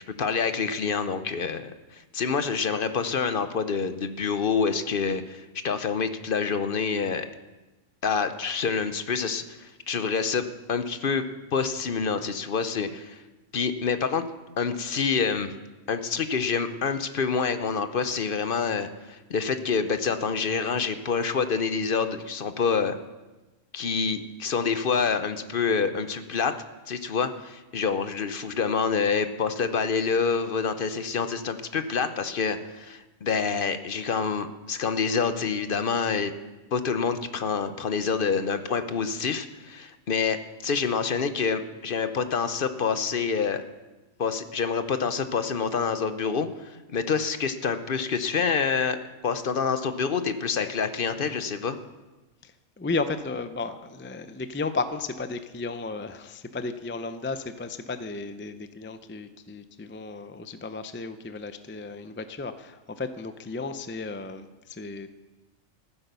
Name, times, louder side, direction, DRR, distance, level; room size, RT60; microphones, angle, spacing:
voice 1, 0.2-7.3 8.0-11.2 11.5-13.2 13.5-14.2 14.6-15.5 15.9-23.0 23.7-26.5 26.9-36.3 36.7-43.6 44.2-51.8, left 5 dB, 50° left, 10 dB, 0.9 m, -27 dB
voice 2, 52.4-65.1, left 3 dB, 15° left, 10 dB, 0.4 m, -34 dB
14.5 x 9.9 x 6.8 m, 1.1 s
omnidirectional pair, 1.3 m